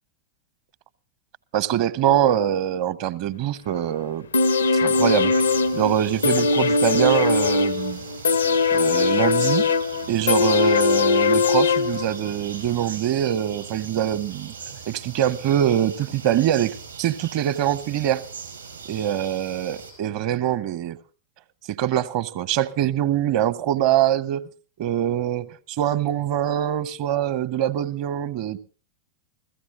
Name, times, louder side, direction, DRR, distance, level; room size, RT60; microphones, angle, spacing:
voice 1, 1.5-4.3 4.8-5.3 5.7-8.0 8.7-9.7 10.1-14.5 14.9-18.2 18.9-21.0 21.7-24.4 24.8-28.6, right 11 dB, 45° right, 0.9 m, -23 dB
sound 1, 4.3-12.3 12.7-12.8, left 4 dB, 75° left, 0.7 m, -20 dB
sound 2, 5.3-19.9, right 5 dB, 70° right, 5.3 m, -40 dB
29.0 x 16.0 x 2.6 m
figure-of-eight pair, 90°, 0 cm